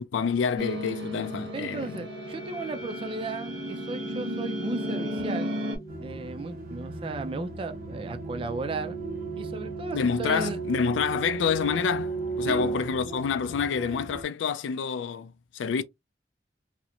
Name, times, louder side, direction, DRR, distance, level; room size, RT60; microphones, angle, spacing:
voice 1, 0.0-2.0 9.9-15.8, left 6 dB, 85° left, 0.3 m, -28 dB
sound 1, 0.6-5.8, equal, 80° right, 0.9 m, -34 dB
sound 2, 1.3-14.0, right 5 dB, 20° left, 0.6 m, -37 dB
voice 2, 1.5-5.6 6.0-9.0 9.4-10.6 12.5-12.7, right 3 dB, 30° right, 0.3 m, -35 dB
sound 3, 5.9-14.2, equal, 50° right, 0.7 m, -42 dB
2.9 x 2.0 x 2.4 m
head